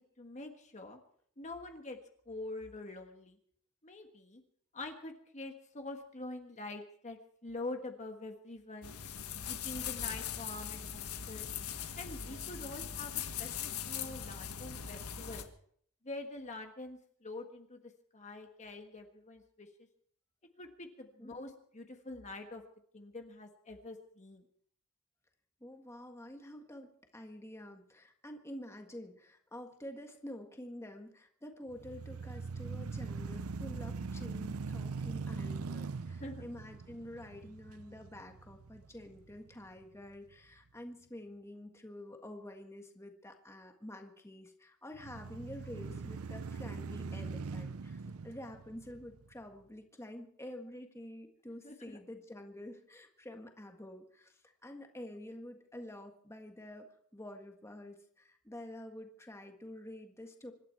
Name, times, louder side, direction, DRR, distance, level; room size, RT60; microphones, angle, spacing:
voice 1, 0.2-1.0 1.4-2.0 2.3-3.4 3.8-4.4 4.7-8.9 9.5-11.0 11.3-11.5 12.0-15.5 16.0-19.7 20.6-22.6 22.9-24.4 36.2-36.4 48.1-48.2 51.6-52.0, left 2 dB, 35° left, 4 dB, 1.5 m, -45 dB
sound 1, 8.8-15.4, left 8 dB, 90° left, 1.7 m, -40 dB
voice 2, 25.6-60.5, left 1 dB, 15° left, 4 dB, 1.6 m, -48 dB
sound 2, 31.7-39.8 40.3-40.4 44.9-49.4, right 4 dB, 80° right, 0.6 m, -42 dB
25.5 x 12.0 x 4.6 m, 0.64 s
head